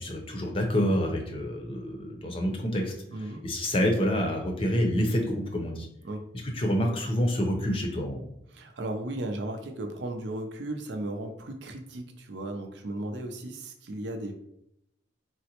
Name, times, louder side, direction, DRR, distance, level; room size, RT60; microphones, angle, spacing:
voice 1, 0.0-2.9 3.4-5.9 6.5-8.3, equal, 30° left, 2 dB, 0.5 m, -27 dB
voice 2, 3.1-3.4 6.0-6.2 8.5-14.3, right 1 dB, 70° right, 5 dB, 0.5 m, -35 dB
3.8 x 2.1 x 2.8 m, 0.77 s
head